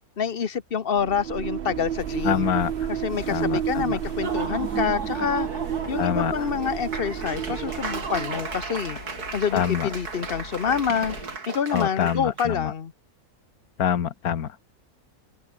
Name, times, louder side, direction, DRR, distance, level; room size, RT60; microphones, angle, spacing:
voice 1, 0.2-2.5 2.9-5.5 5.9-9.0 9.3-11.2 11.5-12.9, left 7 dB, 40° left, 1.1 m, -27 dB
sound 1, 0.9-8.7, right 9 dB, 50° right, 0.7 m, -31 dB
sound 2, 1.7-11.4, left 2 dB, 90° left, 8.3 m, -44 dB
voice 2, 2.2-2.9 3.3-4.0 6.0-6.3 9.5-9.9 11.7-12.7 13.8-14.5, left 9 dB, 75° left, 1.7 m, -25 dB
Laughter / Applause, 4.1-12.5, right 4 dB, 80° right, 3.6 m, -35 dB
omnidirectional pair, 1.6 m